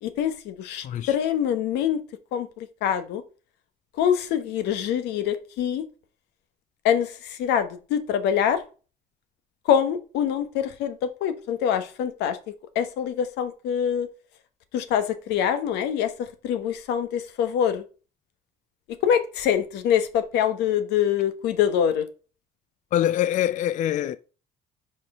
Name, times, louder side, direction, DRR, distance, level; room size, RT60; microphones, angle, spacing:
voice 1, 0.0-2.0 2.3-3.2 4.0-5.8 6.8-8.6 9.6-12.4 12.7-14.1 14.7-17.8 19.0-22.1, left 9 dB, 85° left, 1.0 m, -25 dB
voice 2, 0.8-1.2 22.9-24.2, left 11 dB, 50° left, 0.4 m, -24 dB
5.4 x 4.4 x 5.3 m
cardioid pair, 110°, 17 cm